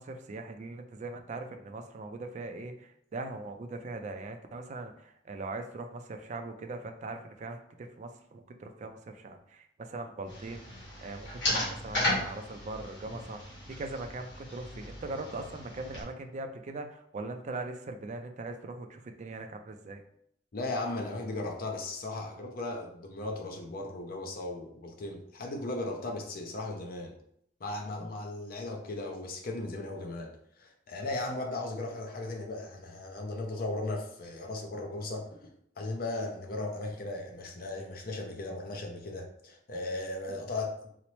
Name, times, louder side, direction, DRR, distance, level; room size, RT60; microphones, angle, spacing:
voice 1, 0.0-10.6 11.0-20.0, right 2 dB, 40° right, 6 dB, 0.3 m, -40 dB
sound 1, 10.3-16.0, left 1 dB, 75° left, 1.4 m, -35 dB
voice 2, 20.5-27.1 27.6-30.3 30.6-35.5 35.8-40.8, left 2 dB, 55° left, 2 dB, 0.5 m, -37 dB
4.0 x 2.0 x 3.0 m, 0.71 s
head